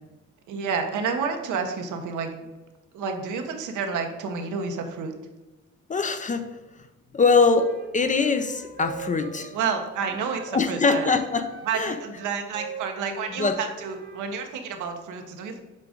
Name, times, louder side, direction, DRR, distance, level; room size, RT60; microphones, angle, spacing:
voice 1, 0.5-2.4 2.9-5.1 9.5-11.1 11.6-15.6, right 5 dB, 80° right, 5 dB, 0.9 m, -30 dB
voice 2, 5.9-6.5 7.1-9.5 10.5-11.5 11.7-12.0 13.4-13.6, left 4 dB, 25° left, 9 dB, 0.5 m, -22 dB
Wind instrument woodwind instrument, 7.5-10.5 10.9-14.4, right 5 dB, 35° right, 0.9 m, -42 dB
7.5 x 2.5 x 4.9 m, 1.1 s
cardioid pair, 90°, 30 cm